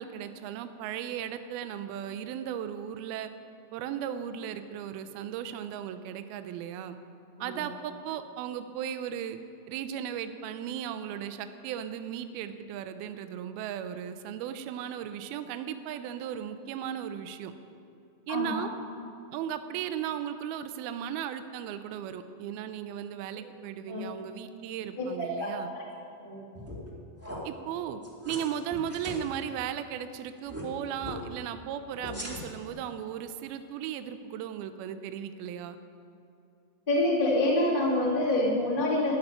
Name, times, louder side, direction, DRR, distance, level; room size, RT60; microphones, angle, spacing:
voice 1, 0.0-3.3 3.7-7.0 7.4-9.4 9.7-17.5 18.3-18.7 19.3-25.7 27.4-28.0 28.3-35.8, right 9 dB, 80° right, 10 dB, 2.3 m, -36 dB
voice 2, 18.3-18.6 23.3-23.4 23.9-24.0 25.0-25.8 26.2-26.4 36.9-39.1, left 1 dB, 15° left, -4 dB, 1.7 m, -27 dB
sound 1, 26.5-26.9 27.2-27.4 28.0-28.4 28.7-29.2 30.4-30.6 31.0-31.2 32.0-32.7, equal, 5° right, 1.1 m, -39 dB
14.0 x 8.9 x 10.0 m, 2.6 s
omnidirectional pair, 5.0 m